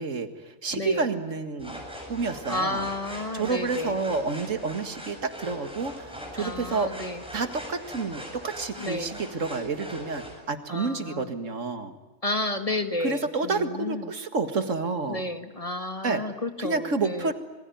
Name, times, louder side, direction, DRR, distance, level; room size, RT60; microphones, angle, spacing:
voice 1, 0.0-1.8 2.1-2.9 3.3-6.9 7.3-11.9 13.0-15.2 16.0-16.2 16.6-17.3, right 4 dB, 80° right, 9 dB, 2.2 m, -29 dB
voice 2, 0.7-1.0 2.5-4.0 6.4-7.2 8.8-9.1 10.7-11.3 12.2-14.1 15.1-17.3, left 2 dB, 30° left, 8 dB, 1.8 m, -31 dB
sound 1, 1.6-10.4, equal, 5° right, 7.8 m, -41 dB
27.0 x 22.0 x 9.4 m, 1.1 s
omnidirectional pair, 1.3 m